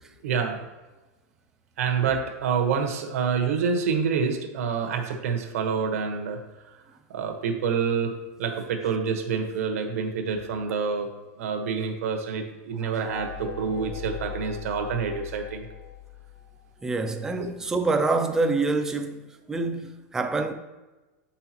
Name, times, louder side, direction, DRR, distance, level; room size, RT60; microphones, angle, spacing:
voice 1, 0.2-0.7 1.8-6.4 7.1-8.1 8.4-11.1 11.4-15.7 17.4-17.5, right 6 dB, 75° right, 1.2 m, -27 dB
sound 1, 13.1-16.8, left 6 dB, 45° left, 1.2 m, -39 dB
voice 2, 16.8-20.5, right 3 dB, 5° right, 0.4 m, -26 dB
7.7 x 5.6 x 3.0 m
supercardioid pair, 170°, 8 cm